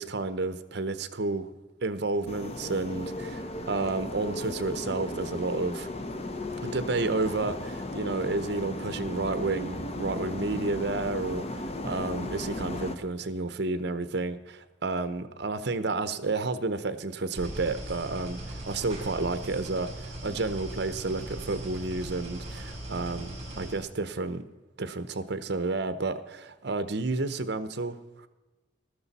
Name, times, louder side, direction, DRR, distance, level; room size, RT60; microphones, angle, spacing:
voice 1, 0.0-1.5 1.8-5.9 6.6-11.4 11.8-24.4 24.8-28.0, right 3 dB, 60° right, 12 dB, 0.8 m, -31 dB
sound 1, 2.3-13.0, left 1 dB, 35° left, 0.9 m, -36 dB
sound 2, 17.3-23.8, right 1 dB, 35° right, 4.8 m, -39 dB
14.0 x 13.0 x 4.2 m, 1.2 s
head